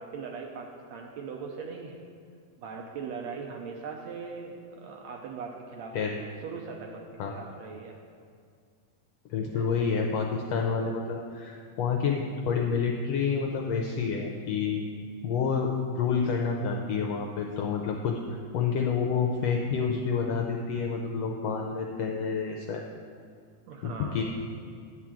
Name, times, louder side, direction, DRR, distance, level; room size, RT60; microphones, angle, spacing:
voice 1, 0.0-2.0 2.6-8.0 9.5-9.8 23.7-24.2, right 5 dB, 75° right, 1 dB, 1.7 m, -40 dB
voice 2, 9.3-14.8 15.2-18.2 18.5-22.8 23.8-24.2, left 5 dB, 80° left, 1 dB, 1.5 m, -28 dB
10.0 x 4.7 x 7.3 m, 2.3 s
omnidirectional pair, 3.5 m